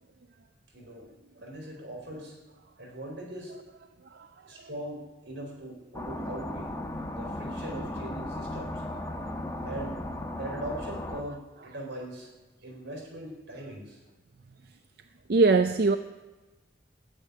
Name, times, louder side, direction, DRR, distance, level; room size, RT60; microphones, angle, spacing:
voice 1, 0.7-1.0 1.4-2.4 2.8-3.6 4.4-6.7 7.1-8.8 9.6-10.0 10.4-12.3 12.6-14.0, right 1 dB, 85° right, 1 dB, 4.5 m, -40 dB
sound 1, 5.9-11.2, left 1 dB, 15° left, 1.1 m, -36 dB
voice 2, 15.3-16.0, right 3 dB, 60° right, 9 dB, 0.5 m, -22 dB
12.0 x 8.3 x 9.7 m, 1.2 s
head